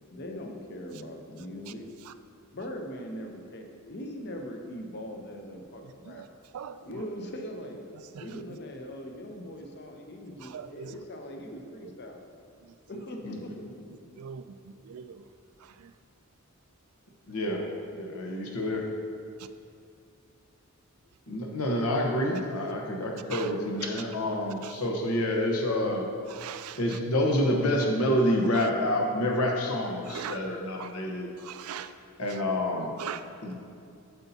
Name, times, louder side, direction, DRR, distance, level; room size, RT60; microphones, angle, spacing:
voice 1, 0.0-1.9 2.5-6.2 6.8-7.9 8.2-12.3 12.9-13.8 14.1-14.2, equal, 50° left, 3 dB, 0.7 m, -41 dB
voice 2, 10.5-10.9 14.2-14.4 14.9-15.2 23.3-23.5 24.6-24.7 26.3-27.0 28.5-28.7 30.0-30.4 30.8-30.9 31.4-31.9 33.0-33.2, right 9 dB, 75° right, 11 dB, 0.3 m, -39 dB
voice 3, 17.3-17.6 17.9-18.8 21.3-26.0 26.8-31.3 32.2-32.9 33.4-33.5, left 1 dB, 80° left, 1 dB, 1.0 m, -28 dB
8.0 x 6.9 x 2.8 m, 2.5 s
head